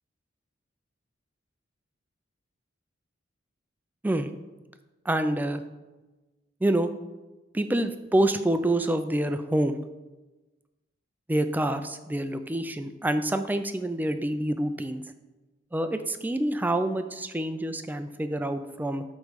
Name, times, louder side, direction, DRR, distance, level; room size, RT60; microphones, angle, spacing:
voice 1, 5.1-5.6 6.6-6.9 7.5-9.8 11.3-15.0 15.7-19.0, right 1 dB, 10° right, 9 dB, 0.3 m, -27 dB
8.0 x 3.1 x 5.1 m, 1.2 s
head